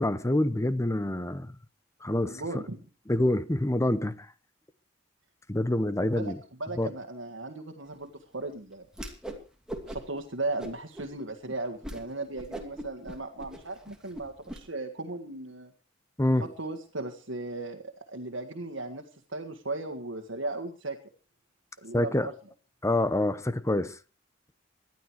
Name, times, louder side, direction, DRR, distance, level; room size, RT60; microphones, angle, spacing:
voice 1, 0.0-1.5 2.0-2.4 3.1-4.3 5.5-6.4 6.8-6.9 16.2-16.5 21.9-22.3 22.8-23.9, left 1 dB, 15° left, 0.8 m, -26 dB
voice 2, 2.1-2.8 6.0-9.2 9.9-15.7 16.4-19.1 19.3-21.0 21.8-22.3, right 2 dB, 75° right, 1.8 m, -37 dB
Whoosh swoosh swish, 8.9-9.4 9.7-10.2 10.6-11.1 11.5-11.6 11.8-12.0 12.3-14.6, right 1 dB, 5° right, 2.6 m, -40 dB
19.5 x 12.5 x 4.7 m
head